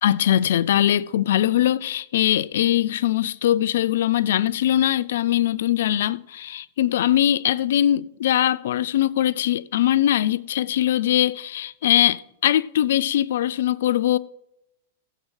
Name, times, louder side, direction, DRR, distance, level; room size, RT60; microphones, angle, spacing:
voice 1, 0.0-14.2, left 12 dB, 70° left, 0.3 m, -21 dB
15.5 x 7.5 x 3.3 m
hypercardioid pair, 115°, 0 cm